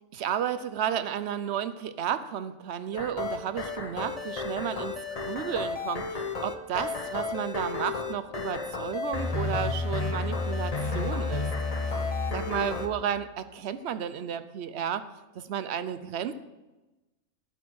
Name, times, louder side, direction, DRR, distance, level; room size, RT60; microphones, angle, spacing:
voice 1, 0.1-11.5 12.3-15.0 15.3-16.3, right 9 dB, 60° right, 12 dB, 0.9 m, -32 dB
sound 1, 2.9-12.9, left 3 dB, 35° left, 0.8 m, -31 dB
14.0 x 8.0 x 4.7 m, 1.1 s
omnidirectional pair, 1.4 m